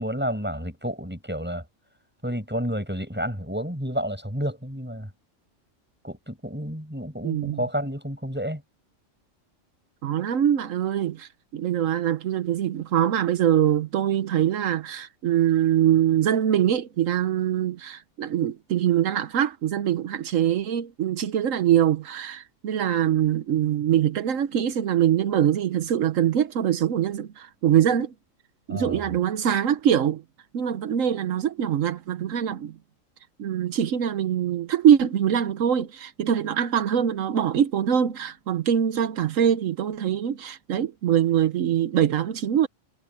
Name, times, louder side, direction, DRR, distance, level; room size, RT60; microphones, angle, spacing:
voice 1, 0.0-1.6 2.2-5.1 6.0-8.6 28.7-29.0, equal, 10° right, 7.9 m, -30 dB
voice 2, 7.2-7.6 10.0-28.1 28.7-30.2 30.5-32.7 33.4-42.7, right 10 dB, 80° right, 1.2 m, -23 dB
omnidirectional pair, 1.3 m